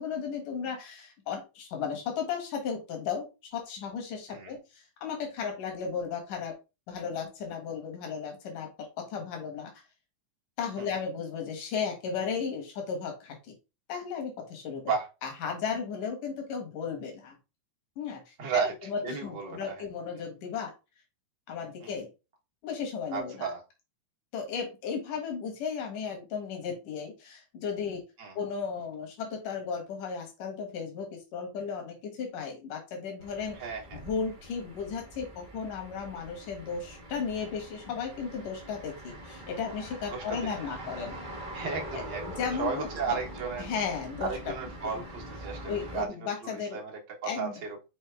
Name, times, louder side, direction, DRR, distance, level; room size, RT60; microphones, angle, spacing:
voice 1, 0.0-6.6 6.9-8.7 9.0-9.7 10.6-13.5 13.9-14.8 15.2-17.4 18.0-20.7 21.5-22.1 22.6-23.5 24.3-28.0 28.3-33.6 33.9-41.2 41.9-42.0 42.3-43.2 43.6-44.3 44.8-44.9 45.6-46.8 47.2-47.5, left 6 dB, 80° left, 3 dB, 3.2 m, -35 dB
voice 2, 18.4-19.8 21.8-21.9 23.1-23.6 28.2-28.4 33.5-34.0 40.1-40.4 40.8-40.9 41.5-42.3 42.6-43.7 44.2-47.8, right 5 dB, 50° right, 0 dB, 1.5 m, -34 dB
sound 1, 33.2-46.0, right 1 dB, 65° right, 0.4 m, -43 dB
6.4 x 4.4 x 3.4 m, 0.28 s
omnidirectional pair, 3.6 m